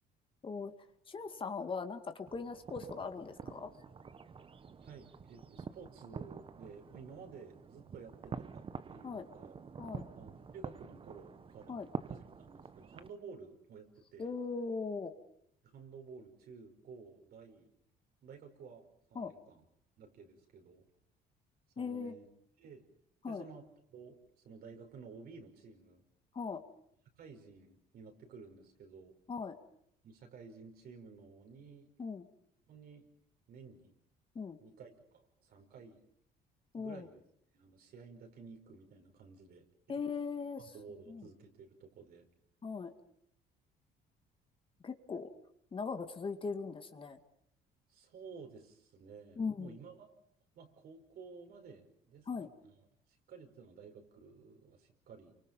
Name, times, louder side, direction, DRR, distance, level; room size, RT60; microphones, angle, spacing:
voice 1, 1.1-3.7 9.0-9.2 9.8-10.1 11.7-11.9 14.2-15.1 19.2-19.3 21.8-22.1 23.2-23.4 26.3-26.6 29.3-29.6 32.0-32.3 34.4-34.6 36.7-37.1 39.9-40.7 41.1-41.3 42.6-42.9 44.8-45.3 45.7-47.2 49.4-49.8 52.3-52.5, left 5 dB, 30° left, 7 dB, 2.1 m, -39 dB
sound 1, 2.3-13.1, right 5 dB, 30° right, 1.1 m, -47 dB
voice 2, 4.8-9.6 10.1-11.8 12.1-14.3 15.6-17.7 18.2-18.9 19.1-19.6 20.0-20.9 21.8-22.3 22.6-22.9 23.3-26.0 27.2-29.1 30.0-31.9 32.7-33.1 33.5-33.9 34.6-36.0 36.8-37.2 37.5-40.0 40.6-42.3 47.9-50.1 50.5-52.3 52.6-52.7 53.3-55.4, right 5 dB, 65° right, 4 dB, 5.3 m, -53 dB
29.0 x 24.5 x 5.5 m, 0.70 s
cardioid pair, 110°, 17 cm